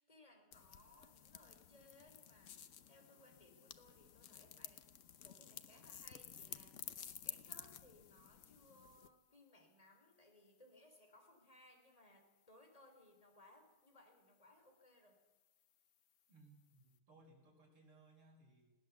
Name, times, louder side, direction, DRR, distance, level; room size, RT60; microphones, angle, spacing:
voice 1, 0.0-4.9 5.1-15.2, left 1 dB, 15° left, 3 dB, 3.7 m, -65 dB
sound 1, 0.5-9.1, left 9 dB, 70° left, 0.7 m, -53 dB
voice 2, 16.3-18.7, right 2 dB, 75° right, 0 dB, 5.8 m, -65 dB
20.5 x 18.0 x 7.2 m, 1.1 s
omnidirectional pair, 2.4 m